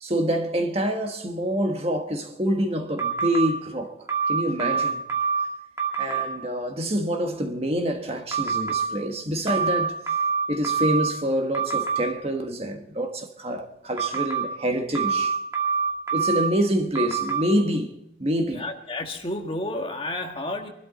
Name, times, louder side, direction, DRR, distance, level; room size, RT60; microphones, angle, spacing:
voice 1, 0.0-3.9 4.3-5.0 6.0-10.0 10.5-15.4 16.1-17.9 18.2-18.7, equal, 35° right, 1.4 m, -26 dB
sound 1, 3.0-3.5 4.1-5.4 5.8-6.2 8.3-8.9 9.5-11.1 11.5-12.0 14.0-14.4 15.0-16.5 17.0-17.4, right 6 dB, 15° right, 2.1 m, -25 dB
voice 2, 18.5-20.7, left 1 dB, 30° left, 1.5 m, -31 dB
23.5 x 12.5 x 4.2 m
head